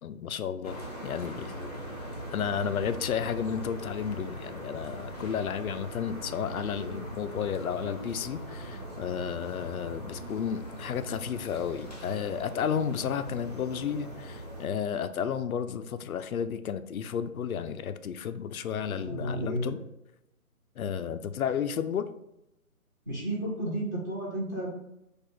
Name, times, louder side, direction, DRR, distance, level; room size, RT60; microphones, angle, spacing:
voice 1, 0.0-1.5 2.3-19.8 20.8-22.1, left 8 dB, 75° left, 11 dB, 0.5 m, -32 dB
sound 1, 0.6-14.7, equal, 30° left, 0.6 m, -41 dB
voice 2, 18.8-19.7 23.1-24.7, right 1 dB, 15° right, -10 dB, 0.9 m, -32 dB
4.7 x 2.5 x 4.0 m, 0.86 s
hypercardioid pair, 170°, 43 cm